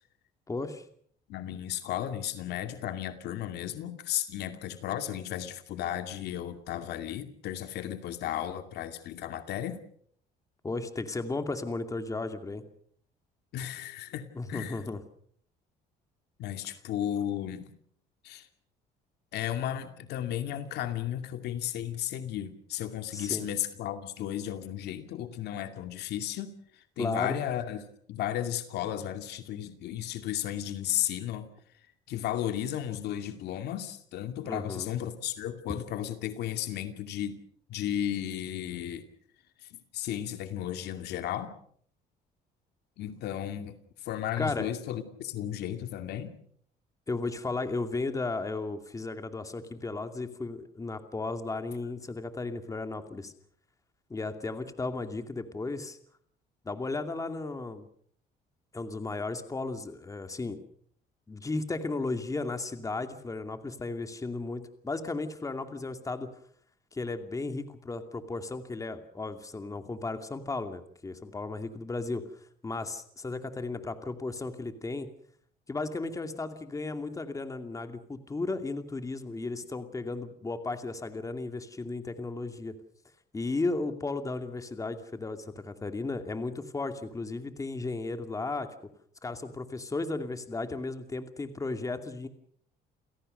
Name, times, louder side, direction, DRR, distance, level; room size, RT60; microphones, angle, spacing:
voice 1, 0.5-0.8 10.6-12.6 14.3-15.0 23.1-23.5 27.0-27.4 34.4-34.9 44.4-44.7 47.1-53.3 54.1-56.0 56.6-57.9 58.7-60.6 61.3-66.3 66.9-72.2 72.6-75.1 75.7-82.7 83.3-88.7 89.2-92.3, left 3 dB, 20° left, 8 dB, 2.5 m, -35 dB
voice 2, 1.3-9.8 13.5-14.9 16.4-17.7 18.2-18.5 19.3-31.5 32.1-37.4 37.7-39.0 39.7-41.5 43.0-43.7 44.0-46.4, left 11 dB, 75° left, 8 dB, 2.4 m, -34 dB
29.0 x 17.0 x 6.7 m, 0.63 s
cardioid pair, 110°, 17 cm